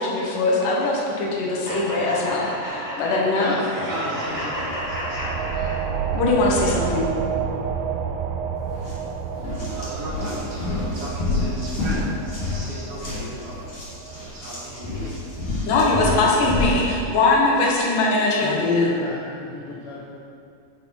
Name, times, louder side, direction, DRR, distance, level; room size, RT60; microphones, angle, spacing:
voice 1, 0.0-3.5 6.1-7.1 15.7-18.9, left 2 dB, 90° left, -3 dB, 2.6 m, -21 dB
sound 1, 1.6-6.3, equal, 15° left, 0.6 m, -32 dB
voice 2, 3.3-5.7 9.5-13.6 14.0-15.1, right 1 dB, 70° right, -7 dB, 2.9 m, -35 dB
sound 2, 4.2-15.5, right 6 dB, 85° right, 2.2 m, -30 dB
sound 3, 8.7-8.9 9.3-16.9, left 2 dB, 35° left, 1.2 m, -28 dB
voice 3, 18.4-20.2, left 4 dB, 70° left, -4 dB, 1.7 m, -27 dB
10.0 x 4.5 x 4.1 m, 2.5 s
omnidirectional pair, 3.7 m